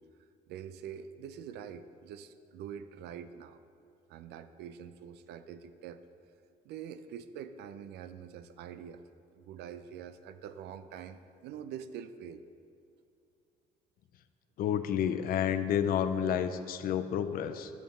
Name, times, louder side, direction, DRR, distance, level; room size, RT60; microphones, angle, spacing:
voice 1, 0.5-3.6 4.1-6.0 6.6-9.1 9.4-12.4, right 8 dB, 75° right, 12 dB, 0.4 m, -45 dB
voice 2, 14.6-17.7, left 9 dB, 60° left, 11 dB, 0.4 m, -30 dB
8.8 x 5.3 x 4.4 m, 2.5 s
cardioid pair, 110°, 17 cm